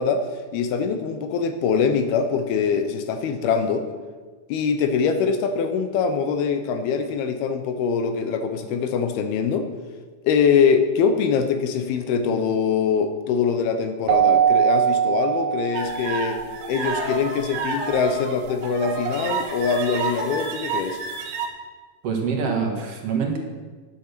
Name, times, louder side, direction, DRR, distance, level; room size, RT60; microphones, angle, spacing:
voice 1, 0.0-3.9 4.5-9.7 10.2-16.4 16.7-21.0, left 6 dB, 80° left, 8 dB, 2.8 m, -23 dB
Keyboard (musical), 14.1-16.3, right 9 dB, 90° right, 2.7 m, -20 dB
sound 1, 15.7-21.5, right 4 dB, 70° right, 3.0 m, -29 dB
voice 2, 22.0-23.4, right 5 dB, 50° right, 1 dB, 2.0 m, -25 dB
10.5 x 8.7 x 6.7 m, 1.4 s
omnidirectional pair, 4.5 m